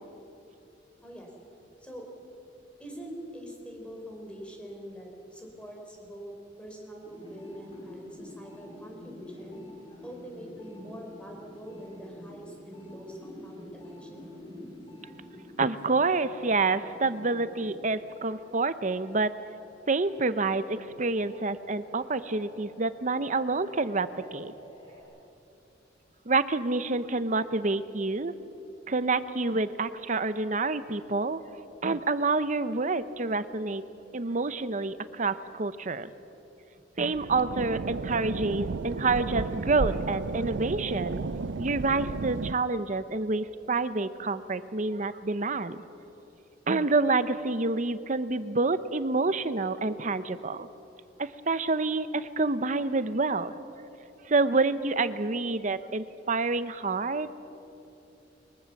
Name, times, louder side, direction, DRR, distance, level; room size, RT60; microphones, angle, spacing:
voice 1, 2.8-6.3 6.6-9.6 10.0-14.3, equal, 5° left, 0 dB, 4.4 m, -44 dB
sound 1, 7.0-18.3 18.7-25.0, left 1 dB, 30° left, 6.3 m, -49 dB
voice 2, 15.6-19.3 19.9-24.5 26.3-28.3 28.9-31.4 31.8-33.8 34.1-36.1 37.0-41.2 41.6-45.8 46.7-50.7 51.2-53.5 54.3-57.3, right 3 dB, 40° right, 13 dB, 0.8 m, -28 dB
sound 2, 37.0-42.5, right 4 dB, 75° right, 0.5 m, -33 dB
23.0 x 21.5 x 7.2 m, 2.9 s
head